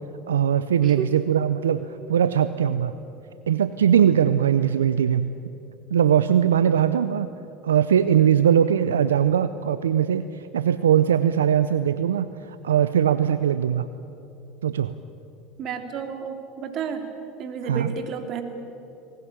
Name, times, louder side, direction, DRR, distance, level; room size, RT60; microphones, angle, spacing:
voice 1, 0.3-2.9 3.5-5.3 5.9-7.3 7.6-13.9 14.6-14.9 17.7-17.9, right 9 dB, 85° right, 12 dB, 0.5 m, -21 dB
voice 2, 0.8-1.1 15.6-17.1 17.4-18.4, right 7 dB, 50° right, 6 dB, 2.8 m, -31 dB
20.0 x 18.0 x 9.8 m, 2.8 s
hypercardioid pair, 75°, 0 cm